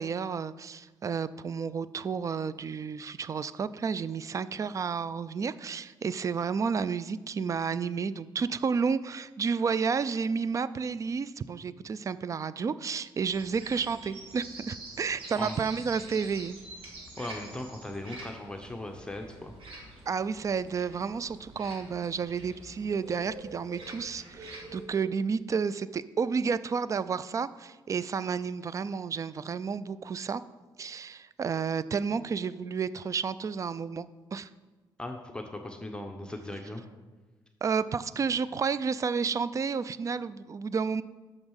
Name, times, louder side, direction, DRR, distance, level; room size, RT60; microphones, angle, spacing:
voice 1, 0.0-16.6 20.1-30.4 30.8-34.5 37.6-41.0, right 5 dB, 35° right, 16 dB, 0.4 m, -31 dB
sound 1, 13.3-24.9, right 2 dB, 75° right, 1.9 m, -46 dB
voice 2, 17.2-19.5 35.0-36.8, left 1 dB, 10° left, 3 dB, 0.9 m, -38 dB
6.3 x 6.1 x 6.4 m, 1.2 s
cardioid pair, 75°, 9 cm